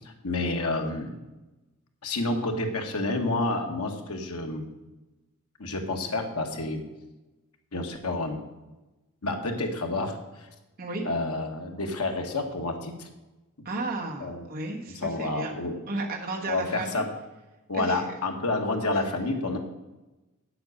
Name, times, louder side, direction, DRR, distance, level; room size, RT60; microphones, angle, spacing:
voice 1, 0.2-1.1 2.0-4.7 5.6-6.8 7.7-8.4 9.2-10.5 11.0-13.1 14.2-14.4 15.0-15.8 16.5-17.1 17.7-19.6, left 2 dB, 85° left, 3 dB, 1.7 m, -29 dB
voice 2, 13.6-15.5 15.9-17.0 17.7-18.0, right 2 dB, 45° right, -1 dB, 1.3 m, -33 dB
8.6 x 7.8 x 6.5 m, 1.1 s
head